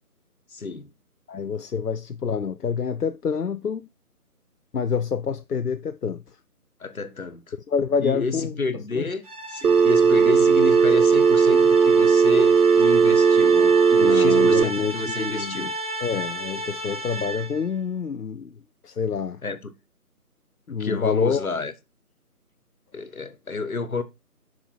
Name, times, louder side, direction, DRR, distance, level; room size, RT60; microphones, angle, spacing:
voice 1, 0.5-0.9 6.8-7.4 8.0-15.7 19.4-19.7 20.7-21.7 22.9-24.0, left 4 dB, 65° left, 1.4 m, -30 dB
voice 2, 1.3-3.9 4.7-6.4 7.7-8.5 8.9-9.1 13.9-15.7 16.0-18.6 18.8-19.4 20.7-21.5, left 6 dB, 80° left, 0.7 m, -27 dB
sound 1, 9.2-17.7, right 2 dB, 25° right, 2.6 m, -33 dB
Telephone, 9.6-14.6, right 5 dB, 85° right, 0.6 m, -17 dB
9.6 x 5.9 x 4.3 m
figure-of-eight pair, 155°, 46 cm